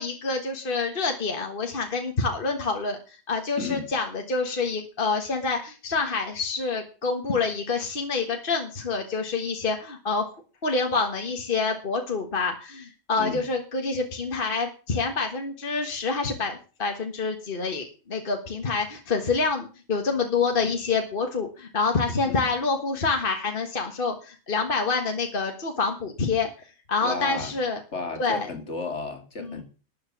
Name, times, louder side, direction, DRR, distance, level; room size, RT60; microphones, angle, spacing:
voice 1, 0.0-10.3 10.6-26.5 26.9-27.8 28.2-28.5 29.4-29.6, left 4 dB, 45° left, 1.7 m, -27 dB
voice 2, 3.6-3.9 13.2-13.4 22.3-22.5 27.0-27.5 27.9-29.6, left 4 dB, 65° left, 2.6 m, -33 dB
12.5 x 7.1 x 7.3 m
omnidirectional pair, 1.3 m